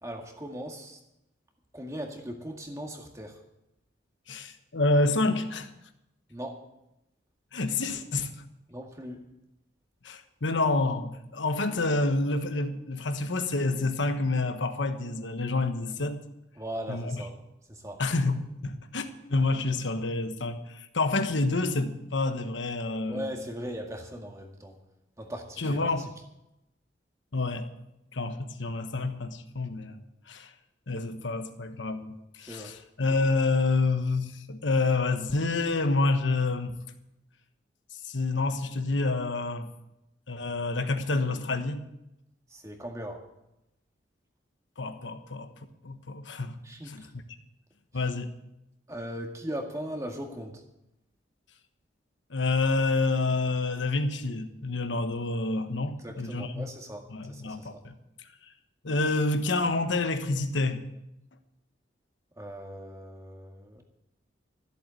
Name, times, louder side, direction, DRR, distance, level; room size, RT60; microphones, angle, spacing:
voice 1, 0.0-1.0 1.7-3.4 6.3-6.6 8.7-9.2 16.6-17.3 17.7-18.0 23.1-24.8 25.2-26.1 32.4-32.7 42.5-43.2 46.6-47.1 47.9-48.0 48.9-50.6 56.0-57.8 62.4-63.8, equal, 15° right, 2 dB, 2.0 m, -39 dB
voice 2, 4.3-5.7 7.5-8.3 10.0-16.2 16.9-17.2 18.0-23.3 25.6-26.1 27.3-27.7 28.1-30.0 30.3-30.5 30.9-36.8 38.0-39.7 40.3-41.8 44.8-45.5 45.8-46.6 46.8-47.1 47.9-48.3 52.3-56.7 57.1-57.9 58.8-60.8, left 3 dB, 85° left, 8 dB, 1.2 m, -28 dB
14.5 x 8.1 x 8.2 m, 0.87 s
head